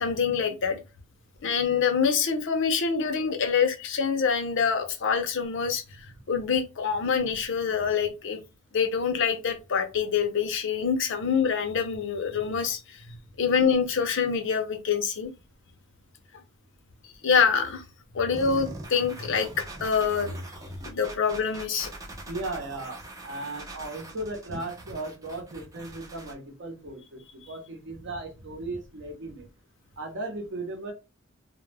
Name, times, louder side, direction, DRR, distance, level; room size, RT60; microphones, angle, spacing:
voice 1, 0.0-0.8 1.4-8.4 8.7-15.3 17.2-17.8 18.1-19.5 19.8-20.4 20.8-21.9, left 6 dB, 60° left, 7 dB, 0.5 m, -26 dB
sound 1, 18.3-26.3, right 2 dB, 15° right, 0.4 m, -43 dB
voice 2, 22.2-29.5 30.0-30.9, right 2 dB, 55° right, 3 dB, 0.7 m, -36 dB
2.2 x 2.0 x 3.2 m, 0.28 s
head